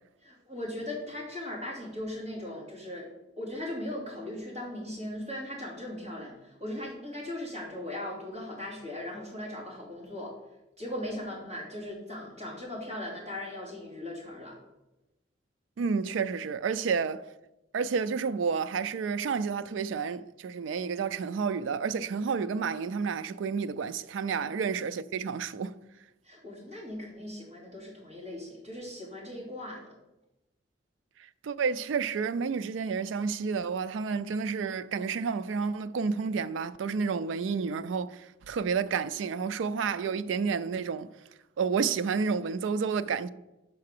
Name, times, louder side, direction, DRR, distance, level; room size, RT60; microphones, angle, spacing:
voice 1, 0.2-3.1 3.4-10.4 10.8-14.6 24.4-24.5 26.2-29.8, left 1 dB, 35° right, 2.8 m, -38 dB
voice 2, 15.8-17.3 17.7-25.8 31.4-41.1 41.6-43.3, right 5 dB, 80° right, 0.3 m, -30 dB
5.8 x 4.7 x 6.6 m
head